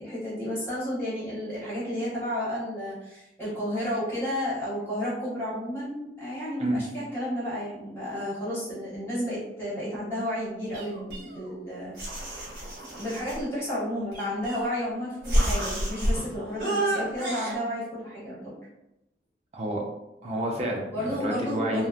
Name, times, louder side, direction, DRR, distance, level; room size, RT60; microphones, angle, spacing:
voice 1, 0.0-11.9 12.3-12.5 12.9-18.6 20.9-21.9, equal, 15° left, -10 dB, 1.2 m, -32 dB
sound 1, 10.7-11.6 12.0-13.4 14.1-14.9 15.2-16.2 16.6-17.5, right 1 dB, 55° right, 1.1 m, -29 dB
voice 2, 19.5-19.8 20.2-21.9, right 1 dB, 35° right, -1 dB, 0.4 m, -29 dB
2.9 x 2.0 x 2.4 m, 0.92 s
head